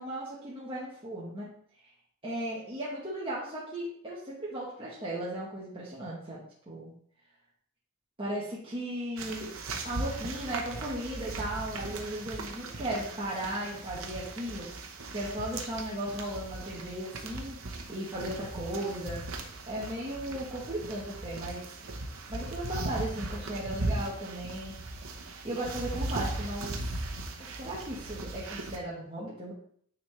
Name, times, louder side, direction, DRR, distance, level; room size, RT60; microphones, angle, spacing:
voice 1, 0.0-1.5 2.2-6.9 8.2-9.5 9.8-14.7 15.1-17.6 17.9-19.2 19.7-21.6 22.3-24.8 25.4-26.7 27.4-29.5, right 1 dB, 25° right, -7 dB, 1.3 m, -36 dB
sound 1, 9.2-28.8, right 2 dB, 75° right, 0.9 m, -38 dB
9.2 x 3.9 x 3.2 m, 0.62 s
head